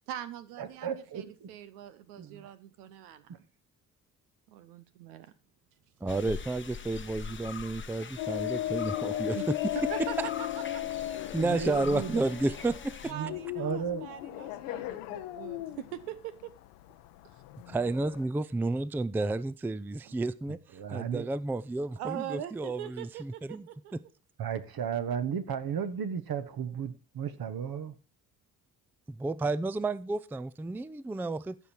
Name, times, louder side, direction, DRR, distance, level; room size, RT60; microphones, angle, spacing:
voice 1, 0.1-3.3 4.5-5.3 9.3-9.4 9.9-10.5 10.7-10.8 13.1-16.5 22.0-23.9, right 11 dB, 85° right, 0.7 m, -42 dB
voice 2, 0.6-1.5 2.2-2.5 11.4-12.3 13.1-14.1 20.7-21.3 24.4-27.9, right 7 dB, 55° right, 1.3 m, -34 dB
voice 3, 6.0-9.7 10.2-10.3 11.3-12.9 17.7-20.6 20.9-24.0 29.1-31.6, right 2 dB, 5° right, 0.4 m, -31 dB
sound 1, 6.1-13.1, left 6 dB, 25° left, 0.9 m, -43 dB
sound 2, 8.2-18.2, left 14 dB, 80° left, 0.8 m, -36 dB
14.0 x 5.6 x 4.5 m
hypercardioid pair, 45°, 44 cm